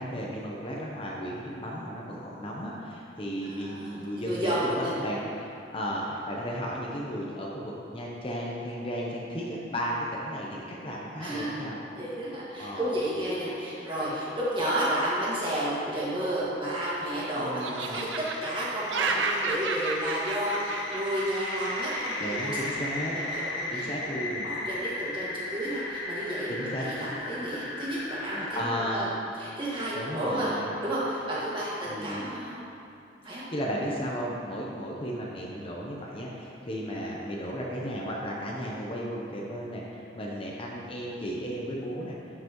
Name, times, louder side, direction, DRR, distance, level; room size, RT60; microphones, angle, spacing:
voice 1, 0.0-11.8 12.6-12.9 17.4-18.0 22.2-23.2 23.7-24.5 26.5-27.1 28.3-29.0 29.9-30.7 31.8-32.2 33.2-42.2, equal, 30° left, -3 dB, 0.8 m, -34 dB
voice 2, 3.4-5.0 11.2-22.8 23.2-23.9 24.4-29.1 29.4-30.5 30.8-32.6 33.2-33.5, right 1 dB, 25° right, -8 dB, 1.9 m, -32 dB
Laughter, 16.4-17.2 17.6-22.0, right 3 dB, 80° right, 0.6 m, -32 dB
sound 1, 17.0-29.0, left 2 dB, 70° left, 1.3 m, -36 dB
11.5 x 5.8 x 3.1 m, 2.6 s
head